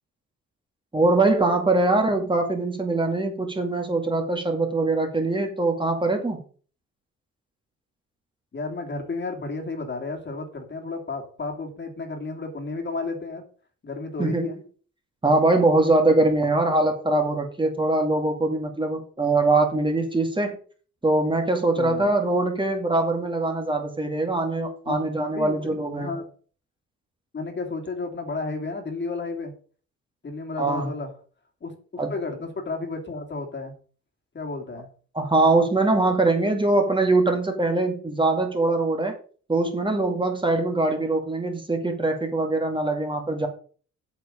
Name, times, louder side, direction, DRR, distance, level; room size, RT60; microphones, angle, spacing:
voice 1, 0.9-6.4 14.2-14.5 15.2-20.6 21.0-26.1 30.6-30.9 32.0-32.1 35.1-39.1 39.5-43.5, right 2 dB, 15° right, 3 dB, 2.3 m, -22 dB
voice 2, 8.5-13.4 13.8-14.6 16.1-16.3 21.7-22.1 24.8-25.0 25.3-26.2 27.3-29.5 30.2-31.1 31.6-33.7 34.3-34.9, left 3 dB, 35° left, 3 dB, 3.0 m, -32 dB
8.3 x 6.2 x 6.7 m, 0.41 s
cardioid pair, 90°, 30 cm